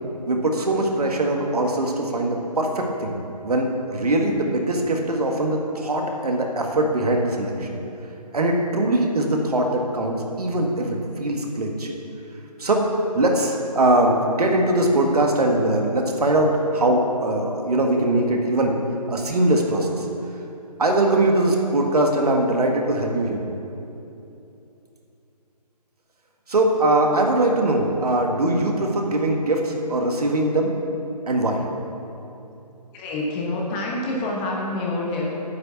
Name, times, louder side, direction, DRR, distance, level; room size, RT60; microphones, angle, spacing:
voice 1, 0.3-3.1 3.4-7.8 8.3-11.9 12.6-12.9 13.1-18.8 19.1-20.1 20.8-23.5 26.5-30.7 31.3-31.6, right 1 dB, 65° right, 2 dB, 1.7 m, -21 dB
voice 2, 32.9-35.3, left 2 dB, 15° left, -2 dB, 1.1 m, -27 dB
9.4 x 6.9 x 8.1 m, 2.8 s
figure-of-eight pair, 150°, 21 cm